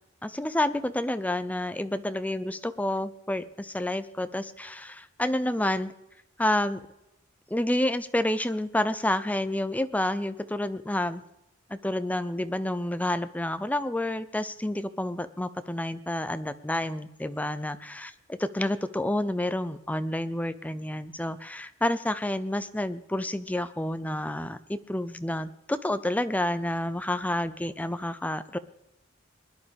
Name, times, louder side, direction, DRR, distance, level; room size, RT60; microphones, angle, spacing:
voice 1, 0.2-5.9 6.4-6.8 7.5-11.2 11.7-28.6, left 1 dB, 5° left, 12 dB, 0.5 m, -29 dB
21.0 x 11.0 x 3.5 m, 0.87 s
head